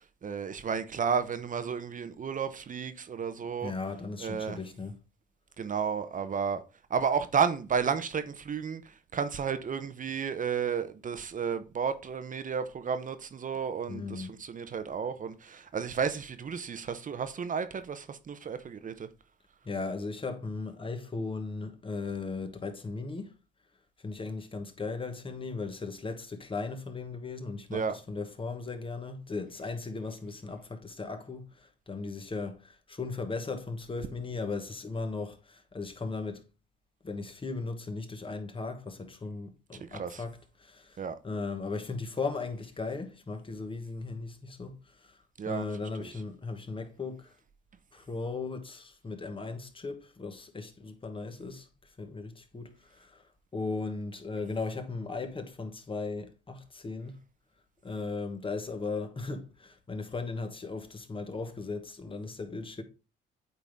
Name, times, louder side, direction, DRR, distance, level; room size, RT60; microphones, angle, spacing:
voice 1, 0.2-3.7 4.2-4.6 5.6-6.6 6.9-19.1 27.7-28.0 39.9-40.2 41.0-41.2 45.4-45.6 46.0-46.1, right 6 dB, 40° right, 0.8 m, -32 dB
voice 2, 3.6-5.0 13.9-14.4 19.6-23.3 24.0-36.4 37.0-45.2 45.5-47.3 47.9-51.7 52.0-53.2 53.5-57.2 57.8-62.8, left 3 dB, 25° left, 1.3 m, -37 dB
8.5 x 4.0 x 3.5 m
cardioid pair, 90°, 20 cm